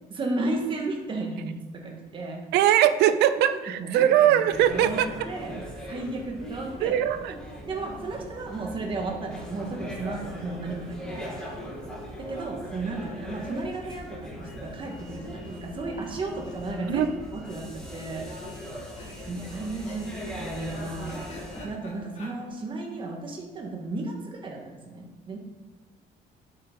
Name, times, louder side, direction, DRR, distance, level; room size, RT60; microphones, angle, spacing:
voice 1, 0.1-2.4 3.8-7.0 7.3-7.4 7.6-11.5 12.2-18.3 19.3-21.2 21.6-25.4, right 2 dB, 30° right, 1 dB, 1.8 m, -34 dB
voice 2, 2.5-5.1 6.8-7.3 16.9-17.1, right 11 dB, 90° right, 12 dB, 0.6 m, -21 dB
sound 1, 4.5-21.6, equal, 5° left, 3.0 m, -40 dB
sound 2, 16.0-16.5 16.8-16.9 17.1-17.2 17.8-22.3, left 2 dB, 40° left, 2.7 m, -47 dB
9.0 x 7.9 x 5.5 m, 1.3 s
cardioid pair, 155°, 17 cm